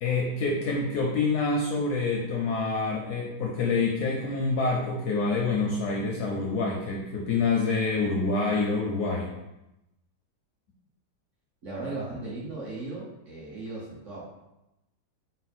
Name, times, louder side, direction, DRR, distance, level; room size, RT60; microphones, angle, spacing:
voice 1, 0.0-9.3, left 3 dB, 70° left, -2 dB, 1.0 m, -27 dB
voice 2, 11.6-14.2, right 2 dB, 50° right, -7 dB, 1.1 m, -37 dB
4.1 x 2.1 x 4.1 m, 0.92 s
omnidirectional pair, 2.1 m